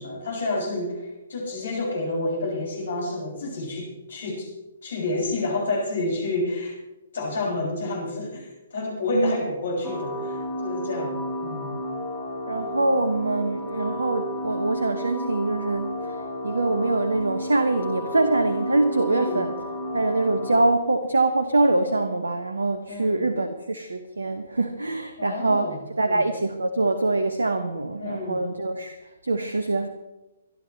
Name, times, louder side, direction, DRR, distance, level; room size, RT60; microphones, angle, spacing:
voice 1, 0.0-4.5 4.8-6.8 7.1-11.7 19.1-19.5 22.9-23.3 25.2-26.2 28.0-28.4, left 2 dB, 55° left, -2 dB, 6.7 m, -29 dB
sound 1, 9.8-20.6, equal, 15° right, 4.9 m, -32 dB
voice 2, 12.5-19.5 19.9-29.9, right 2 dB, 70° right, 9 dB, 1.1 m, -24 dB
25.0 x 11.5 x 3.3 m, 1.0 s
figure-of-eight pair, 125°, 0 cm